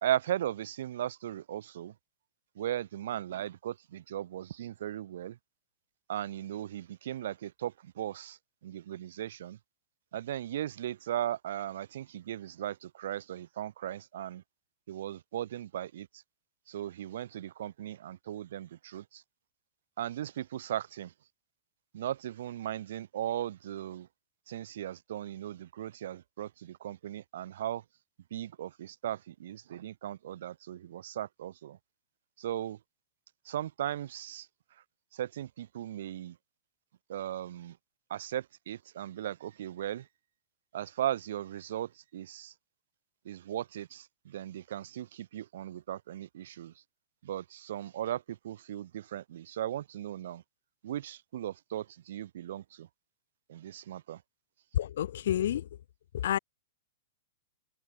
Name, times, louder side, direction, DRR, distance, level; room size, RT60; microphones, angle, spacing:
voice 1, 0.0-1.9 2.6-5.4 6.1-9.6 10.1-14.4 14.9-16.2 16.7-19.2 20.0-21.1 21.9-24.1 24.5-27.8 28.3-31.8 32.4-32.8 33.4-34.5 35.1-36.4 37.1-37.8 38.1-40.1 40.7-42.5 43.3-46.7 47.2-50.4 50.8-52.9 53.5-54.2, right 11 dB, 65° right, 0.4 m, -37 dB
voice 2, 54.7-55.8 56.1-56.4, left 11 dB, 70° left, 0.5 m, -29 dB
hypercardioid pair, 155°, 0 cm